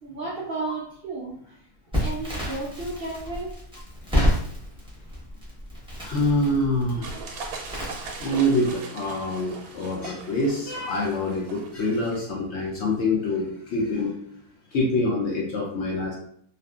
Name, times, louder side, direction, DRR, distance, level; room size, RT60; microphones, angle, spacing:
voice 1, 0.0-1.6 2.0-3.5, right 3 dB, 65° right, -6 dB, 0.6 m, -33 dB
Crackle, 1.9-8.7, equal, 5° right, 0.7 m, -29 dB
voice 2, 6.0-7.1 8.2-14.2 14.7-16.1, left 1 dB, 65° left, -3 dB, 0.7 m, -25 dB
sound 1, 7.0-12.2, right 4 dB, 90° right, 1.1 m, -40 dB
2.7 x 2.4 x 2.3 m, 0.65 s
omnidirectional pair, 1.5 m